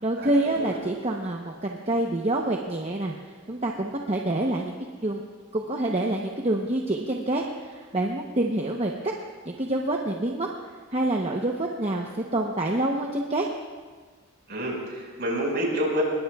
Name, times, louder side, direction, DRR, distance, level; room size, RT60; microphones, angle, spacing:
voice 1, 0.0-3.1 3.5-4.7 5.0-5.2 5.5-9.1 9.5-10.5 10.9-13.5, right 1 dB, 30° right, 0 dB, 0.9 m, -27 dB
voice 2, 14.5-16.0, equal, 50° right, -2 dB, 5.2 m, -28 dB
24.0 x 20.5 x 2.4 m, 1.5 s
head